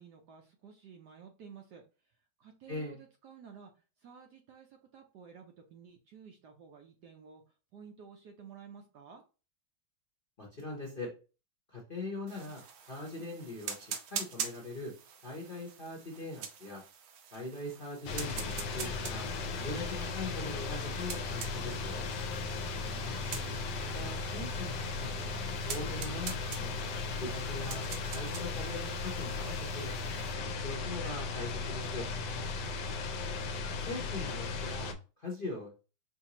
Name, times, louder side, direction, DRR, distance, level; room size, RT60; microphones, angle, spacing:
voice 1, 0.0-3.7 4.0-7.4 7.7-9.2 22.7-23.8, right 7 dB, 70° right, 3 dB, 1.0 m, -53 dB
voice 2, 2.7-3.0 10.4-11.1 11.7-12.6 12.9-14.9 15.2-16.8 17.3-22.1 23.8-26.8 27.2-32.1 33.9-35.7, left 2 dB, 40° left, -2 dB, 0.8 m, -42 dB
sound 1, 12.3-30.3, right 7 dB, 85° right, 1.6 m, -45 dB
sound 2, 18.1-34.9, left 4 dB, 70° left, 1.2 m, -36 dB
5.7 x 2.7 x 2.9 m, 0.33 s
omnidirectional pair, 2.2 m